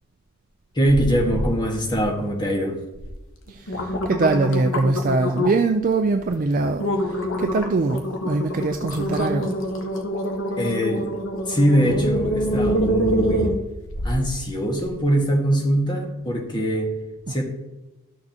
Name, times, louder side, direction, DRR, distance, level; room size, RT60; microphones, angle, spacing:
voice 1, 0.7-2.8 10.6-11.1 11.5-13.6 14.0-16.9 17.3-17.4, equal, 20° left, 0 dB, 1.5 m, -22 dB
sound 1, 0.8-1.5 1.9-2.4 2.9-3.1 3.5-5.7 6.2-6.4 6.8-14.3 14.8-14.9, equal, 60° left, 1.1 m, -25 dB
voice 2, 3.5-9.6 17.3-17.4, right 3 dB, 35° right, 6 dB, 0.4 m, -23 dB
13.0 x 6.5 x 2.9 m, 1.0 s
head